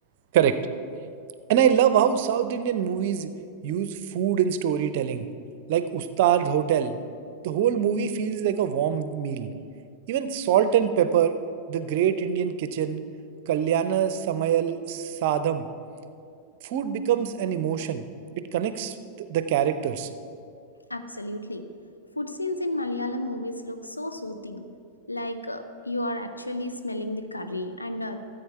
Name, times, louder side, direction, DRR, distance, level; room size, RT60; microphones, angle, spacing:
voice 1, 1.5-3.3 3.6-5.3 5.7-7.0 7.4-9.5 10.1-11.4 11.7-13.0 13.5-15.7 16.6-18.0 18.4-20.1, right 9 dB, 50° right, 11 dB, 0.6 m, -24 dB
voice 2, 20.9-21.6 22.2-24.7 25.1-28.2, left 1 dB, 85° left, 7 dB, 0.7 m, -32 dB
14.0 x 7.9 x 4.5 m, 2.4 s
figure-of-eight pair, 90°, 0 cm